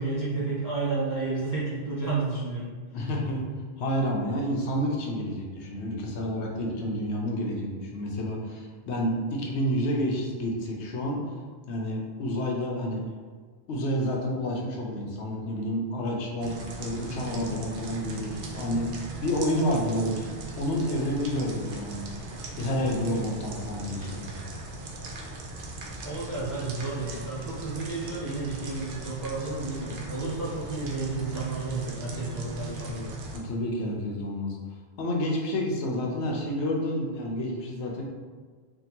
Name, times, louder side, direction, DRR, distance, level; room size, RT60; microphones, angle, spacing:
voice 1, 0.0-2.7 26.0-33.2, right 3 dB, 30° right, -7 dB, 0.3 m, -31 dB
voice 2, 2.9-3.4 3.8-11.2 11.7-13.0 13.7-20.3 20.6-22.1 22.6-24.4 33.3-34.6 35.0-38.0, equal, 85° left, -1 dB, 0.9 m, -29 dB
sound 1, 16.4-33.4, right 2 dB, 80° right, 0.9 m, -38 dB
3.6 x 2.1 x 2.8 m, 1.5 s
omnidirectional pair, 1.1 m